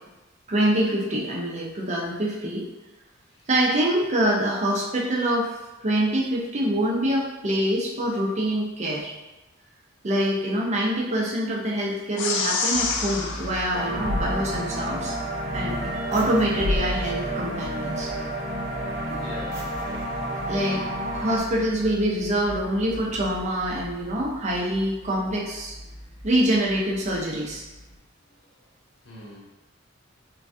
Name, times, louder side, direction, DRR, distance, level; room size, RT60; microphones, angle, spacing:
voice 1, 0.5-2.6 3.5-5.6 5.8-9.1 10.0-15.2 15.5-15.8 16.1-18.1 20.5-20.8 21.1-25.8 26.2-27.6, right 1 dB, 35° right, -2 dB, 0.5 m, -25 dB
sound 1, 12.2-14.8, left 4 dB, 60° left, 0.4 m, -29 dB
sound 2, 12.7-28.0, equal, 15° left, 1.0 m, -41 dB
sound 3, 13.7-21.4, equal, 60° right, 0.8 m, -29 dB
voice 2, 19.2-20.7 28.3-28.4 29.0-29.4, left 1 dB, 80° left, -4 dB, 0.8 m, -44 dB
3.1 x 2.3 x 2.6 m, 1.0 s
head